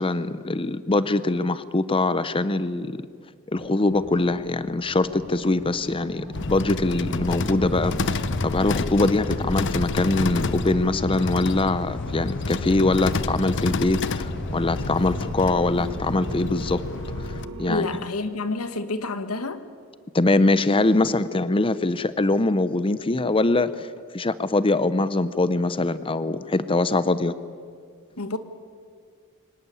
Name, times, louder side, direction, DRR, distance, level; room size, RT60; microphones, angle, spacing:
voice 1, 0.0-3.0 3.5-16.8 17.6-17.9 20.1-27.3, left 2 dB, 25° left, 0.7 m, -23 dB
sound 1, 3.5-17.8, right 1 dB, 75° right, 4.2 m, -42 dB
sound 2, 6.3-17.5, left 3 dB, 55° left, 0.8 m, -29 dB
sound 3, 7.2-16.3, equal, 5° left, 4.1 m, -37 dB
voice 2, 17.7-19.6 28.2-28.4, left 3 dB, 85° left, 1.5 m, -28 dB
24.0 x 18.0 x 10.0 m
head